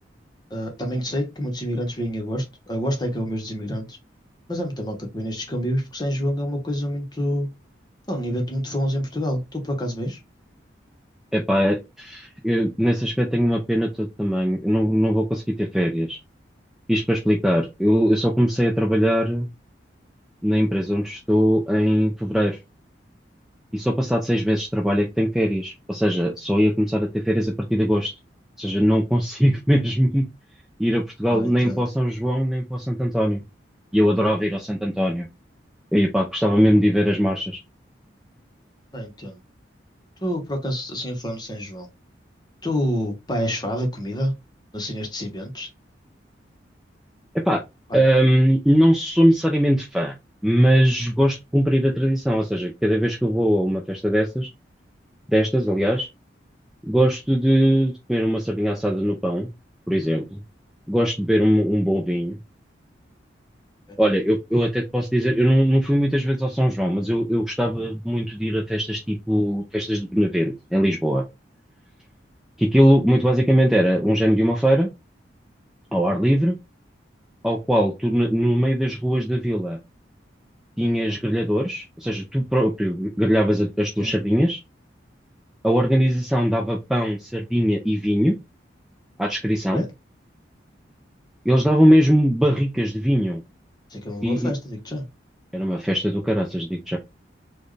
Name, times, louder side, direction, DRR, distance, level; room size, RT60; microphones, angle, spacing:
voice 1, 0.5-4.0 4.5-7.5 8.1-10.2 31.3-31.8 38.9-39.4 40.2-41.9 42.6-44.3 44.7-45.7 47.9-48.0 63.9-64.0 84.0-84.2 89.7-89.9 93.9-95.1, equal, 20° left, 1.0 m, -27 dB
voice 2, 11.3-16.2 16.9-19.5 20.4-22.6 23.7-28.1 28.6-30.3 30.8-33.4 33.9-35.3 35.9-37.6 47.4-47.6 47.9-50.1 50.4-54.5 55.3-56.1 56.9-59.5 59.9-60.4 60.9-62.4 64.0-71.2 72.6-74.9 75.9-76.6 77.4-79.8 80.8-84.6 85.6-88.4 89.2-89.8 91.5-93.4 94.2-94.5 95.5-97.0, equal, 5° right, 0.5 m, -21 dB
4.3 x 2.3 x 3.2 m
head